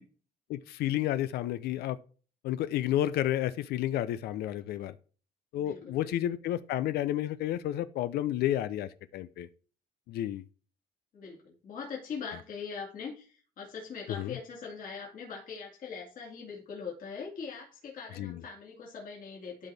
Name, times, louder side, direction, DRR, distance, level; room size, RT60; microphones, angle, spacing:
voice 1, 0.5-2.0 2.4-5.0 5.5-9.5 10.1-10.4 14.1-14.4 18.2-18.4, left 13 dB, 70° left, 0.4 m, -31 dB
voice 2, 5.5-6.1 11.1-19.7, left 5 dB, 55° left, 2.4 m, -42 dB
12.0 x 4.1 x 3.3 m
cardioid pair, 110°, 17 cm